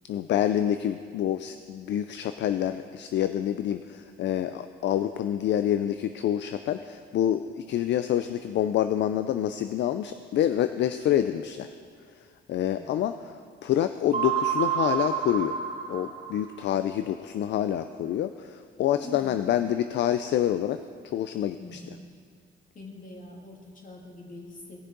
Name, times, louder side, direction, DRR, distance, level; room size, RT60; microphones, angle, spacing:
voice 1, 0.1-11.8 12.5-13.1 13.6-15.6 15.9-20.8 21.1-21.8, left 11 dB, 65° left, 10 dB, 0.4 m, -27 dB
sound 1, 14.1-16.7, right 8 dB, 30° right, 2.1 m, -29 dB
voice 2, 18.9-19.4 21.6-22.0 22.7-24.9, left 1 dB, 40° left, -1 dB, 2.4 m, -44 dB
17.5 x 6.4 x 3.9 m, 2.1 s
cardioid pair, 90°, 20 cm